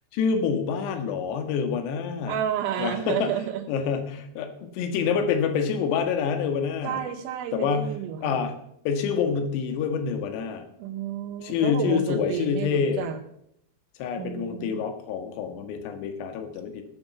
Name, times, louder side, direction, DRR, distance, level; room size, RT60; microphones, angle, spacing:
voice 1, 0.1-2.4 2.8-3.3 3.7-7.0 7.5-7.9 8.2-8.5 8.8-10.6 11.4-13.1 14.0-16.8, left 6 dB, 65° left, 6 dB, 3.3 m, -27 dB
voice 2, 2.3-3.6 6.8-8.4 10.8-13.2 14.2-14.8, right 10 dB, 85° right, 1 dB, 3.9 m, -31 dB
16.5 x 7.0 x 6.9 m, 0.73 s
omnidirectional pair, 5.9 m